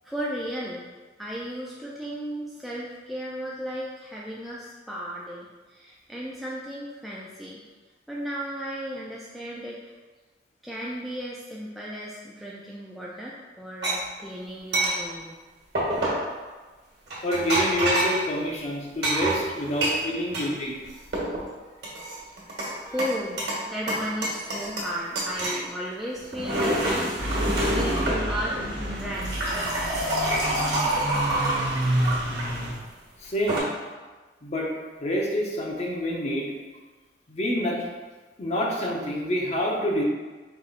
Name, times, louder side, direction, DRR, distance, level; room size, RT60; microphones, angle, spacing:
voice 1, 0.0-0.9 1.2-7.6 8.1-9.8 10.6-15.4 21.6-21.7 22.3-22.4 22.8-27.3 27.6-29.6, equal, ahead, -6 dB, 0.4 m, -35 dB
sound 1, 13.8-14.0 14.7-15.0 15.8-16.3 17.1-18.2 19.0-20.5 20.8-21.4 21.8-22.7 23.0-23.6 23.9-24.9 25.2-25.6 26.2-28.2 29.0-32.5 33.2-33.6, right 1 dB, 70° right, 1.3 m, -26 dB
voice 2, 17.2-20.8 33.2-33.7 34.4-34.7 35.0-36.5 37.3-37.9 38.4-40.0, equal, 40° left, -2 dB, 0.8 m, -27 dB
sound 2, 27.2-32.7, right 1 dB, 85° right, 0.9 m, -29 dB
4.7 x 4.0 x 2.5 m, 1.3 s
head